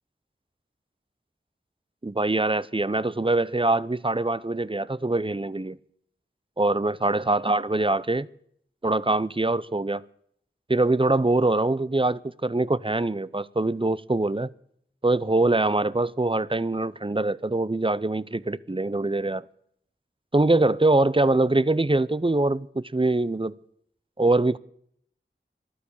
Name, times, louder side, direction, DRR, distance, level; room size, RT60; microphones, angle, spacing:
voice 1, 2.0-5.8 6.6-8.3 8.8-10.0 10.7-14.5 15.0-19.4 20.3-23.5 24.2-24.6, right 2 dB, 25° right, 0.6 m, -23 dB
13.5 x 12.0 x 8.6 m
wide cardioid pair, 40°, 21 cm